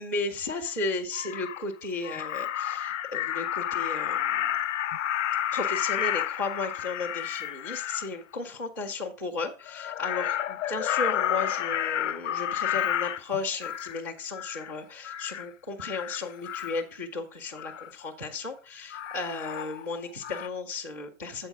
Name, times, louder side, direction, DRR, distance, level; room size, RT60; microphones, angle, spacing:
voice 1, 0.0-4.5 5.5-21.5, left 3 dB, 15° left, -6 dB, 0.3 m, -34 dB
Crow, 0.7-0.8 1.1-1.7 2.0-8.1 9.7-14.0 14.3-14.7 15.0-15.5 15.8-16.8 17.6-17.9 18.9-20.0 20.2-20.5, left 11 dB, 60° left, 0.6 m, -31 dB
7.9 x 4.4 x 5.2 m, 0.32 s
hypercardioid pair, 140°, 42 cm